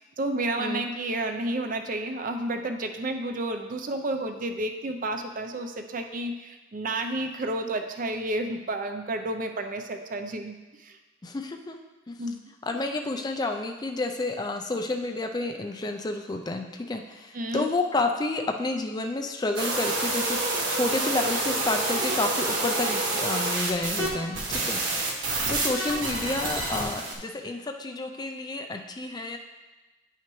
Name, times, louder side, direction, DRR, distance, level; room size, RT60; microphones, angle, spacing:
voice 1, 0.0-11.0 12.2-12.4 17.3-17.7, right 1 dB, 45° right, 5 dB, 0.5 m, -31 dB
voice 2, 0.6-0.9 11.2-11.8 12.1-12.2 12.6-24.8 25.1-29.4, left 2 dB, 20° left, 4 dB, 0.4 m, -30 dB
sound 1, 19.6-24.1 24.3-27.1, right 2 dB, 70° right, 1.3 m, -28 dB
9.4 x 5.7 x 3.1 m, 1.2 s
head